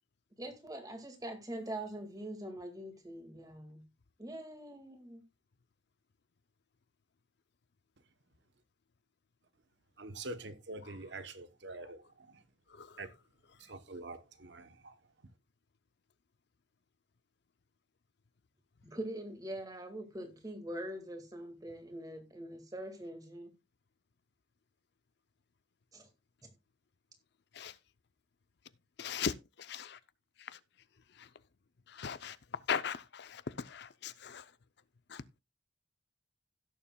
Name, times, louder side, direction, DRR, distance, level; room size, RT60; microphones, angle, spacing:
voice 1, 0.4-3.8 4.2-5.2 18.8-23.5 25.9-26.1 26.4-26.5, right 1 dB, 20° right, 1.9 m, -43 dB
voice 2, 10.0-12.4 13.0-13.1 13.6-15.0, right 2 dB, 60° right, 0.9 m, -45 dB
voice 3, 29.0-29.3 29.6-30.0 31.2-31.3 31.9-32.4 32.7-34.4 35.1-35.2, left 7 dB, 55° left, 0.5 m, -38 dB
17.0 x 7.1 x 2.3 m
head